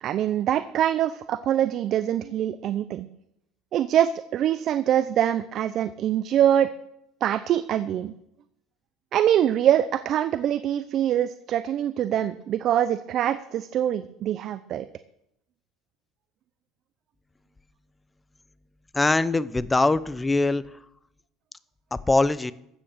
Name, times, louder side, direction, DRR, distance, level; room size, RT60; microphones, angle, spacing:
voice 1, 0.0-3.1 3.7-6.7 7.2-8.1 9.1-14.9, right 10 dB, 50° right, 13 dB, 0.7 m, -24 dB
voice 2, 18.9-20.6 22.1-22.5, left 2 dB, 15° left, 16 dB, 0.8 m, -22 dB
15.0 x 8.6 x 6.8 m, 0.80 s
supercardioid pair, 105°, 0 cm